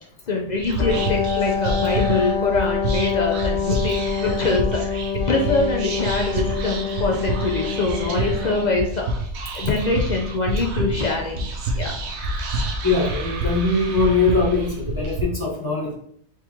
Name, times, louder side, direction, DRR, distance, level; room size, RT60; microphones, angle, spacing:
voice 1, 0.3-9.0 9.5-11.5 11.7-11.9, left 3 dB, 55° left, 0 dB, 0.5 m, -24 dB
Whispering, 0.6-15.2, right 1 dB, 70° right, 0.9 m, -28 dB
Wind instrument woodwind instrument, 0.8-8.9, left 6 dB, 75° left, 1.1 m, -26 dB
voice 2, 12.8-15.9, left 3 dB, 20° left, -3 dB, 0.8 m, -21 dB
4.6 x 2.6 x 2.8 m, 0.68 s
omnidirectional pair, 1.2 m